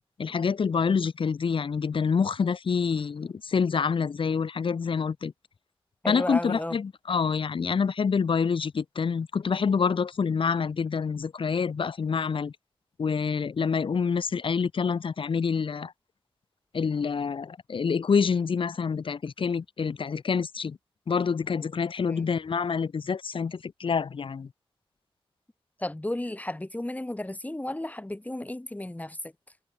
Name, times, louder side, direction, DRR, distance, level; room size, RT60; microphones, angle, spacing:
voice 1, 0.2-5.3 6.1-12.5 13.0-15.9 16.7-20.8 21.1-24.5, left 6 dB, 70° left, 1.2 m, -27 dB
voice 2, 6.0-6.8 22.1-22.3 25.8-29.3, left 1 dB, 15° left, 3.6 m, -33 dB
cardioid pair, 60°, 9 cm